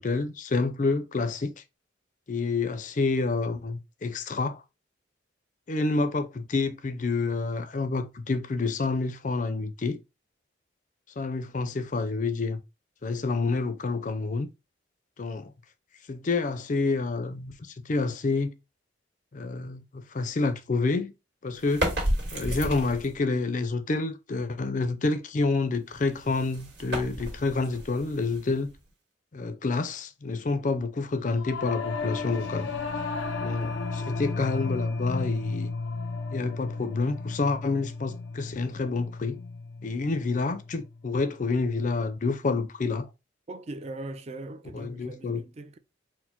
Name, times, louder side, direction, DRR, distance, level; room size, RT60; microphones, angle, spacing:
voice 1, 0.0-1.5 2.3-4.6 5.7-10.0 11.2-12.6 13.0-14.5 15.2-15.5 16.1-18.5 19.3-21.1 21.4-21.9 22.3-28.7 29.3-32.7 33.4-35.7 36.3-39.4 39.8-43.1 44.7-45.4, left 3 dB, 40° left, 0.4 m, -28 dB
sound 1, 21.6-23.2 25.9-28.9, equal, 60° right, 1.7 m, -32 dB
Singing / Musical instrument, 31.3-40.9, left 3 dB, 80° left, 0.6 m, -34 dB
voice 2, 43.5-45.8, right 2 dB, 35° right, 0.4 m, -40 dB
4.3 x 2.0 x 4.3 m
head